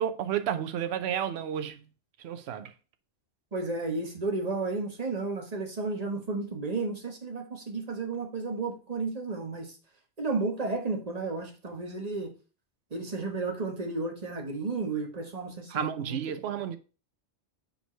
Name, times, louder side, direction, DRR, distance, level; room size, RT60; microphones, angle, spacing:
voice 1, 0.0-1.8 2.2-2.7 15.7-16.8, right 9 dB, 70° right, 0.9 m, -31 dB
voice 2, 3.5-9.7 10.2-12.3 12.9-16.2, right 3 dB, 35° right, 1.3 m, -33 dB
5.4 x 4.5 x 4.5 m
omnidirectional pair, 1.2 m